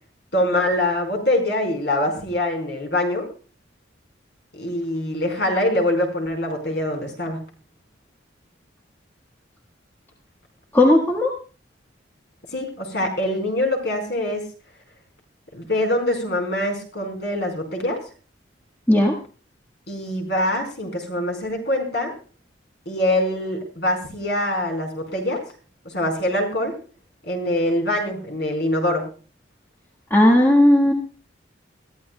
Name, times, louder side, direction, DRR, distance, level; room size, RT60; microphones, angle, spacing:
voice 1, 0.3-3.3 4.5-7.4 12.5-14.4 15.5-18.0 19.9-22.1 22.9-25.4 25.8-26.7 27.3-29.0, left 1 dB, 60° left, 4 dB, 4.7 m, -24 dB
voice 2, 10.7-11.3 18.9-19.1 30.1-30.9, left 1 dB, 10° left, -2 dB, 1.6 m, -15 dB
22.0 x 14.0 x 2.3 m, 0.38 s
head